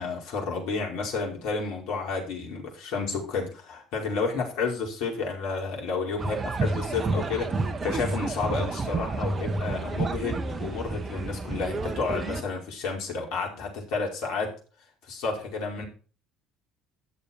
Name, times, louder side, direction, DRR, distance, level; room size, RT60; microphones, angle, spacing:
voice 1, 0.0-14.5 15.1-15.8, left 4 dB, 65° left, 0 dB, 5.2 m, -31 dB
sound 1, 6.2-12.4, right 3 dB, 30° right, 1.4 m, -30 dB
13.0 x 7.1 x 4.6 m, 0.36 s
hypercardioid pair, 60°, 0 cm